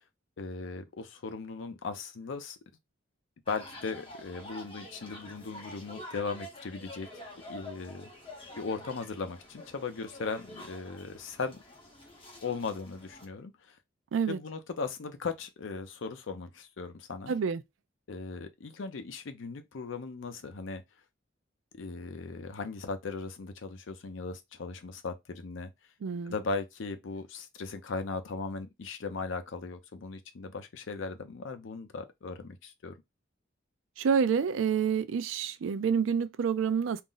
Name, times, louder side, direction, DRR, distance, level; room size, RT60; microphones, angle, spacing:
voice 1, 0.4-2.6 3.5-7.1 7.5-8.1 8.6-11.6 12.4-13.7 14.3-17.3 18.1-20.8 21.7-25.7 26.2-32.9, left 4 dB, 80° left, 0.5 m, -38 dB
sound 1, 3.5-13.3, left 1 dB, 25° left, 0.8 m, -47 dB
voice 2, 17.3-17.6 26.0-26.3 34.0-37.0, right 6 dB, 80° right, 0.4 m, -28 dB
2.4 x 2.0 x 3.7 m
head